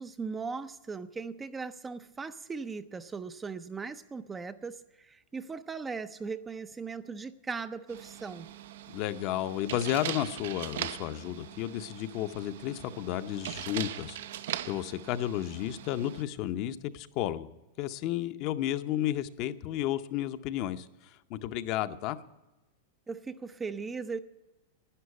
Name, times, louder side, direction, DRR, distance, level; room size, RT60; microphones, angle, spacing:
voice 1, 0.0-8.5 23.1-24.2, right 5 dB, 15° right, 0.4 m, -38 dB
sound 1, 7.9-16.2, right 11 dB, 70° right, 0.6 m, -41 dB
voice 2, 8.9-14.2 14.7-17.5 17.8-22.2, left 12 dB, 40° left, 0.7 m, -32 dB
11.5 x 9.7 x 8.2 m
supercardioid pair, 150°, 0 cm